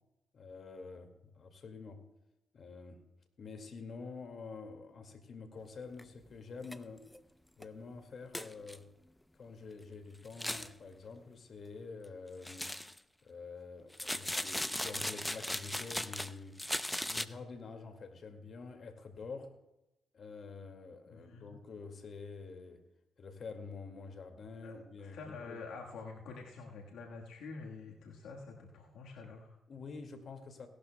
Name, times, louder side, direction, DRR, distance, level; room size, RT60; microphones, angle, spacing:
voice 1, 0.3-2.0 2.5-3.0 3.4-7.1 7.6-8.9 9.3-12.8 13.2-16.6 17.0-19.5 20.1-22.8 23.2-25.6 29.7-30.7, left 4 dB, 55° left, 5 dB, 2.0 m, -47 dB
sound 1, 6.0-6.1 6.6-6.8 7.1-7.2 7.6-7.7 8.3-8.8 10.2-10.7 12.4-13.0 13.9-16.3 16.6-17.2, left 1 dB, 10° left, 0.6 m, -37 dB
voice 2, 21.1-21.5 24.6-29.6, left 4 dB, 85° left, 0 dB, 1.4 m, -47 dB
17.5 x 12.0 x 2.2 m, 0.92 s
supercardioid pair, 60°, 0 cm